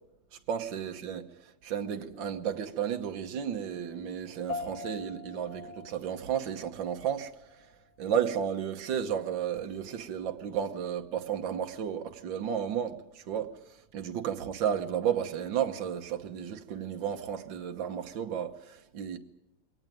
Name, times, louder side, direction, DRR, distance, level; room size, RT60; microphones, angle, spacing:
voice 1, 0.5-7.3 8.0-13.5 13.9-19.2, right 8 dB, 70° right, 1.9 m, -33 dB
sound 1, 4.5-14.1, left 3 dB, 20° left, 2.5 m, -47 dB
23.0 x 18.5 x 9.1 m
omnidirectional pair, 2.1 m